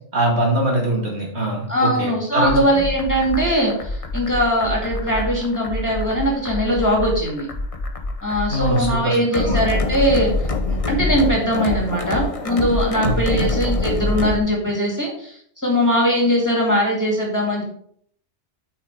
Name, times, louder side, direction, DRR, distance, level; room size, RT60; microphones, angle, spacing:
voice 1, 0.1-2.9 8.5-9.6 13.0-13.5, right 1 dB, 65° right, -2 dB, 2.6 m, -22 dB
voice 2, 1.7-7.5 8.2-17.6, equal, 15° left, -2 dB, 2.2 m, -21 dB
sound 1, 2.4-14.4, left 2 dB, 35° left, 0.9 m, -25 dB
8.5 x 4.7 x 4.7 m, 0.63 s
omnidirectional pair, 1.2 m